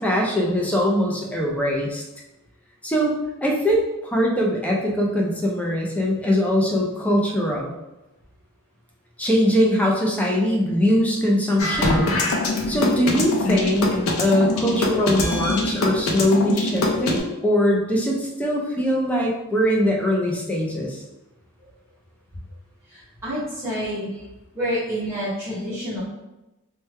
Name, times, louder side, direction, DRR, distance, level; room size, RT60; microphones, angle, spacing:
voice 1, 0.0-2.0 2.8-3.1 3.4-7.7 9.2-12.0 12.7-21.0, equal, 5° left, -2 dB, 0.4 m, -22 dB
sound 1, 11.6-17.2, left 2 dB, 60° left, 0.5 m, -22 dB
voice 2, 22.9-24.1 24.5-26.0, equal, 10° right, -10 dB, 0.8 m, -28 dB
3.1 x 2.2 x 3.2 m, 0.98 s
head